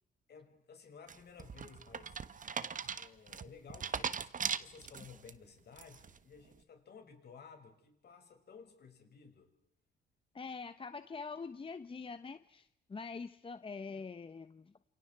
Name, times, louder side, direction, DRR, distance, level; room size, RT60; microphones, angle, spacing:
voice 1, 0.3-2.2 3.0-9.5, left 6 dB, 55° left, 6.4 m, -56 dB
sound 1, 1.1-5.3 5.8-6.2, right 6 dB, 40° right, 1.3 m, -39 dB
voice 2, 10.3-14.9, left 4 dB, 25° left, 0.9 m, -45 dB
29.5 x 28.0 x 4.7 m
cardioid pair, 90°, 20 cm